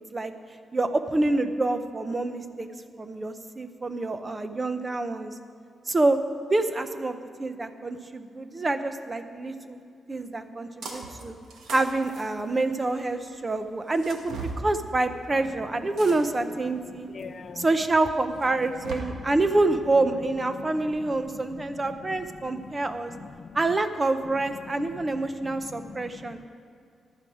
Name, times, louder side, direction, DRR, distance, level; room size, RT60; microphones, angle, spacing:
voice 1, 0.7-2.7 3.0-5.4 5.9-6.2 6.5-9.8 10.1-11.3 11.7-17.1 17.6-23.1 23.5-26.4, right 2 dB, 20° right, 9 dB, 0.7 m, -27 dB
sound 1, 10.8-11.2 11.5-13.0 13.9-14.6 16.0-16.5 17.2-17.3 18.4-18.9, right 4 dB, 85° right, 1.7 m, -38 dB
voice 2, 16.7-17.7 19.0-19.4 20.6-23.6 24.3-24.4 24.7-26.5, left 5 dB, 40° left, 11 dB, 0.4 m, -44 dB
14.5 x 11.5 x 4.9 m, 2.4 s
wide cardioid pair, 155°, 0 cm